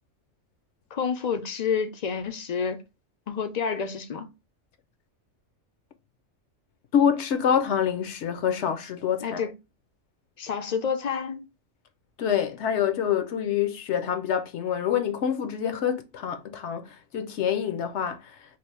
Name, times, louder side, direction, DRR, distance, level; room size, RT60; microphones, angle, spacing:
voice 1, 0.9-2.8 3.3-4.3 9.2-9.5 10.4-11.5, left 6 dB, 55° left, 0.4 m, -29 dB
voice 2, 6.9-9.4 12.2-18.3, left 8 dB, 70° left, 0.9 m, -26 dB
3.3 x 2.5 x 4.5 m
omnidirectional pair, 1.3 m